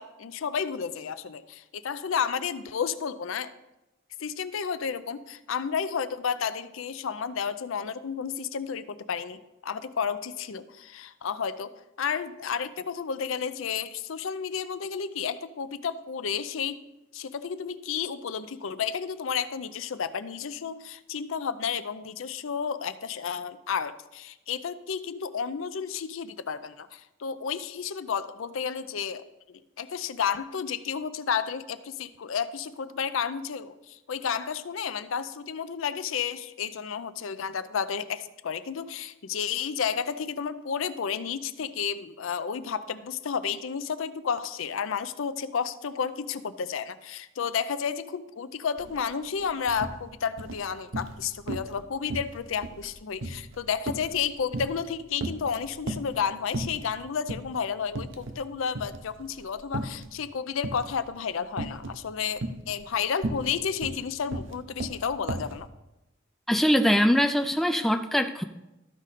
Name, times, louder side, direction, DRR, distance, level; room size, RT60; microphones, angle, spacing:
voice 1, 0.0-3.5 4.2-16.8 17.1-65.7, left 7 dB, 75° left, 13 dB, 0.5 m, -32 dB
sound 1, 48.8-49.0 49.3-50.0 50.4-51.2 51.5-51.8 52.1-54.9 55.2-56.2 56.5-57.0 57.3-57.5 57.9-58.5 58.7-60.1 60.6-61.0 61.6-62.0 62.4-65.6, right 2 dB, 70° right, 0.7 m, -34 dB
voice 2, 66.5-68.4, equal, ahead, 6 dB, 0.3 m, -22 dB
13.5 x 5.0 x 4.1 m, 0.96 s
head